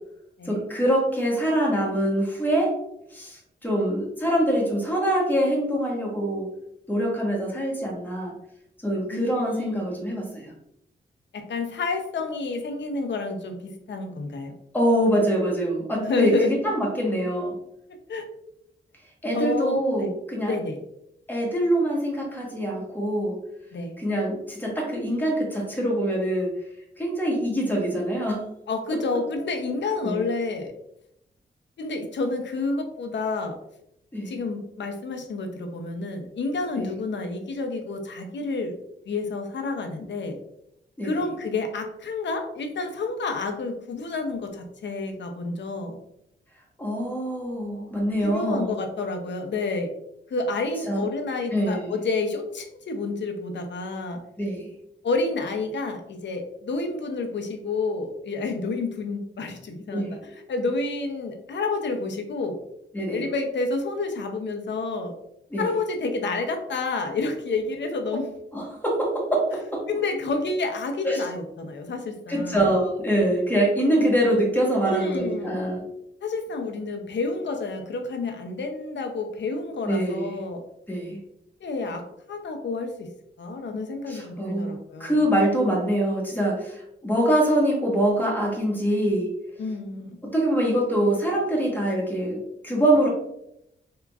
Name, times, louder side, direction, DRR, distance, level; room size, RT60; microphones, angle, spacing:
voice 1, 0.5-2.7 3.1-6.5 6.9-8.3 8.8-10.5 14.7-17.5 19.2-20.5 21.3-23.4 24.0-26.5 27.0-28.4 30.0-30.2 34.1-34.4 36.8-36.9 41.0-41.1 46.8-48.7 50.9-51.1 51.5-51.9 54.4-54.7 59.9-60.1 62.9-63.2 65.5-65.6 68.5-69.8 71.0-71.2 72.3-75.8 79.8-80.4 80.9-81.2 84.1-89.3 90.2-93.1, right 1 dB, 10° left, -2 dB, 1.2 m, -24 dB
voice 2, 9.1-9.8 11.3-14.6 16.0-16.6 18.1-18.3 19.3-20.1 20.5-20.8 23.7-23.9 28.7-30.7 31.8-33.6 34.3-38.7 39.1-40.4 41.0-46.0 48.2-49.9 50.3-54.2 55.0-62.6 63.1-65.1 65.6-68.3 69.9-72.6 74.8-75.6 76.2-80.6 81.6-83.1 83.4-85.3 89.6-90.2, left 3 dB, 70° left, 5 dB, 0.6 m, -29 dB
3.5 x 2.9 x 2.3 m, 0.79 s
cardioid pair, 75°, 19 cm